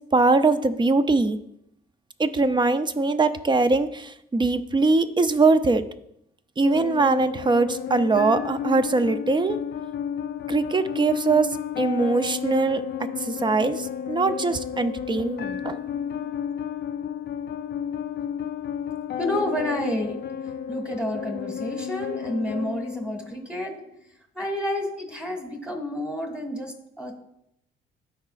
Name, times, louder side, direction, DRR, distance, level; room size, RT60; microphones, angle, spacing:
voice 1, 0.1-1.4 2.2-5.9 6.6-9.6 10.5-12.8 13.2-15.8, right 3 dB, 25° right, 11 dB, 0.5 m, -22 dB
sound 1, 6.6-23.6, left 8 dB, 55° left, 0.5 m, -32 dB
voice 2, 19.2-20.2 20.7-23.7 24.4-27.1, left 1 dB, 5° right, 2 dB, 1.8 m, -29 dB
13.0 x 4.8 x 2.5 m, 0.78 s
cardioid pair, 90°, 20 cm